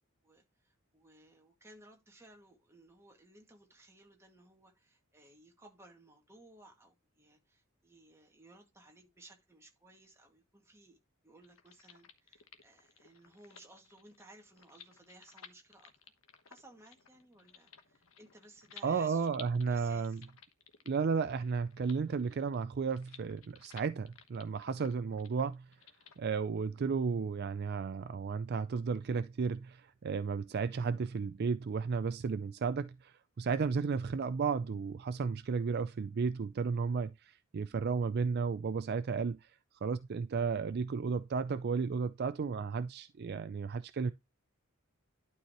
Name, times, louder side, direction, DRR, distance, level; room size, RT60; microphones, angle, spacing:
voice 1, 0.2-11.0 11.2-15.9 16.5-19.3 19.7-20.2, right 1 dB, 10° right, 2.0 m, -59 dB
sound 1, 11.4-26.2, left 7 dB, 70° left, 1.1 m, -57 dB
voice 2, 18.8-20.2 20.9-25.7 26.2-39.5 39.8-44.1, right 5 dB, 50° right, 0.4 m, -33 dB
11.5 x 4.7 x 2.9 m
head